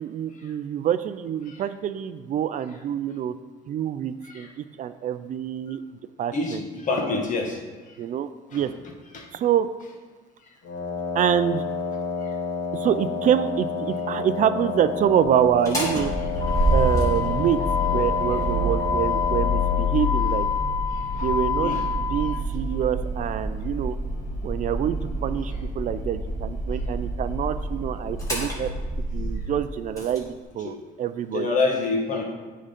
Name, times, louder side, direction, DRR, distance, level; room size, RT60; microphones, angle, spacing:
voice 1, 0.0-3.3 3.7-4.5 4.8-5.8 6.2-6.6 8.0-8.7 9.3-9.7 11.1-11.6 12.7-16.1 16.7-17.6 17.9-20.5 21.1-23.9 24.4-25.0 25.2-28.7 29.1-31.5, right 9 dB, 50° right, 12 dB, 0.4 m, -26 dB
voice 2, 6.3-7.6 8.5-8.6 9.1-9.3 21.2-21.3 21.6-21.8 30.6-30.7 31.3-32.2, left 3 dB, 50° left, 0 dB, 1.7 m, -26 dB
Wind instrument woodwind instrument, 10.6-20.0, left 4 dB, 70° left, 2.2 m, -30 dB
Motor vehicle (road), 15.5-30.2, left 2 dB, 20° left, 2.5 m, -26 dB
9.6 x 3.8 x 5.2 m, 1.4 s
cardioid pair, 110°, 17 cm